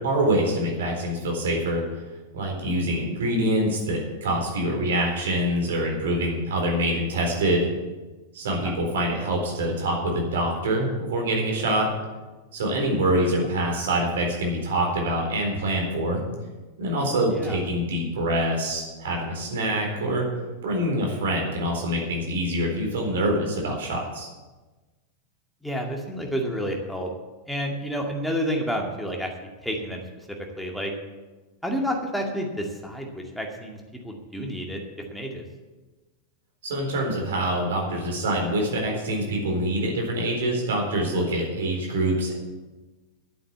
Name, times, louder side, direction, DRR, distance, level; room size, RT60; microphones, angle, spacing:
voice 1, 0.0-1.8 2.3-7.7 8.3-11.9 12.5-16.2 16.8-20.3 20.6-24.3 36.6-42.3, right 1 dB, 60° right, 1 dB, 4.0 m, -25 dB
voice 2, 17.3-17.6 25.6-27.1 27.5-29.3 29.6-30.0 30.3-30.9 31.6-33.8 34.0-34.8 35.1-35.4, equal, ahead, 1 dB, 2.2 m, -30 dB
11.0 x 8.3 x 8.3 m, 1.2 s
figure-of-eight pair, 90°, 0 cm